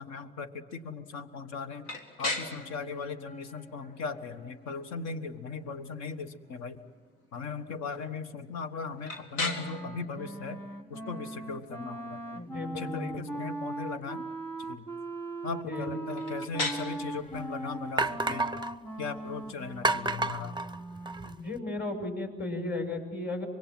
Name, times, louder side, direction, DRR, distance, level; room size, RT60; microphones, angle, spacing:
voice 1, 0.0-1.9 2.2-6.8 7.3-10.6 10.9-12.4 12.8-14.3 14.6-14.9 15.4-18.5 19.0-20.6, left 5 dB, 65° left, 10 dB, 1.5 m, -38 dB
sound 1, 1.8-21.6, left 2 dB, 85° left, 2.0 m, -42 dB
Wind instrument woodwind instrument, 9.4-21.4, right 2 dB, 5° left, 1.4 m, -40 dB
voice 2, 12.3-13.5 15.5-16.0 21.2-23.5, left 2 dB, 35° left, 4 dB, 6.1 m, -35 dB
sound 2, 16.6-16.7 17.3-17.4 18.0-18.8 19.8-21.3, right 2 dB, 15° right, 0.6 m, -30 dB
25.0 x 22.0 x 7.7 m, 1.4 s
hypercardioid pair, 55°, 29 cm